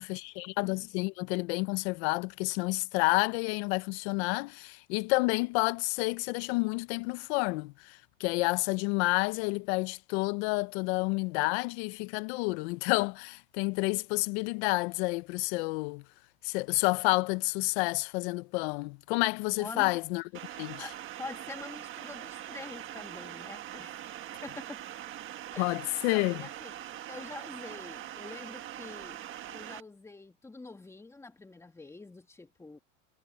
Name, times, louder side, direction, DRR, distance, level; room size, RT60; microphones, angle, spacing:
voice 1, 0.0-16.0 16.4-20.2 20.6-20.9 25.6-26.5, left 26 dB, 55° left, 0.8 m, -30 dB
voice 2, 19.6-20.0 20.8-24.1 24.4-24.8 25.5-26.8 27.1-29.2 29.5-32.8, left 3 dB, 5° left, 1.9 m, -46 dB
sound 1, 20.3-29.8, right 12 dB, 30° right, 1.5 m, -43 dB
supercardioid pair, 140°, 39 cm